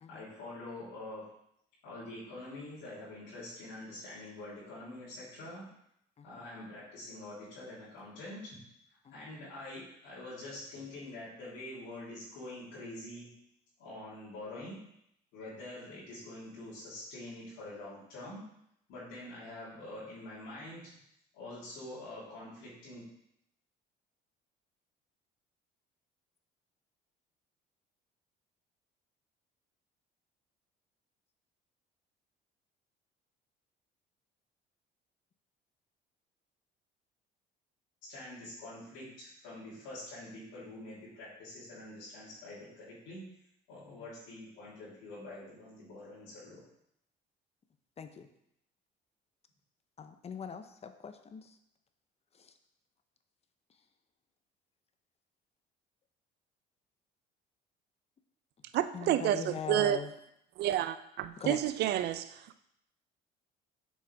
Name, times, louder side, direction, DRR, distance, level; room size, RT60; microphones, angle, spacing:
voice 1, 0.1-1.3 1.8-5.7 6.2-8.6 9.1-13.3 13.8-14.8 15.3-18.5 18.9-20.9 21.3-23.0 38.1-43.2 43.7-46.6, left 1 dB, 85° left, -11 dB, 3.2 m, -45 dB
voice 2, 48.0-48.3 50.0-51.5 52.4-52.5 58.9-60.1 61.4-61.6, left 6 dB, 35° left, 8 dB, 0.7 m, -41 dB
voice 3, 58.7-60.0 60.6-62.4, right 12 dB, 60° right, 11 dB, 0.5 m, -30 dB
7.3 x 6.3 x 3.4 m, 0.76 s
cardioid pair, 100°, 19 cm